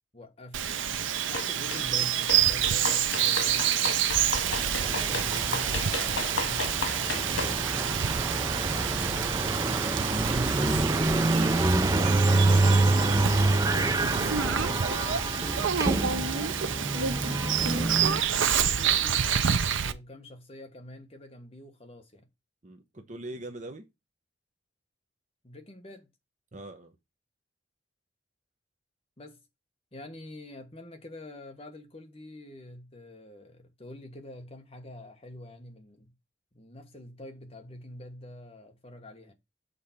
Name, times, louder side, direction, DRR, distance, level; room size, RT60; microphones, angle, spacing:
voice 1, 0.1-0.9 1.3-4.2 4.8-11.1 11.8-13.8 16.0-19.4 19.8-22.3 25.4-26.1 29.2-29.4 29.9-36.1 36.5-39.3, left 1 dB, 30° left, 1.3 m, -46 dB
Bird vocalization bird call bird song, 0.5-19.9, right 8 dB, 75° right, 0.6 m, -28 dB
sound 1, 1.3-1.9 2.3-7.6, left 3 dB, 85° left, 1.7 m, -34 dB
sound 2, 4.4-18.2, right 2 dB, 15° right, 0.4 m, -27 dB
voice 2, 11.9-13.2 14.1-14.9 22.6-23.9 26.5-27.0, right 2 dB, 35° right, 0.8 m, -43 dB
6.8 x 4.1 x 5.7 m
head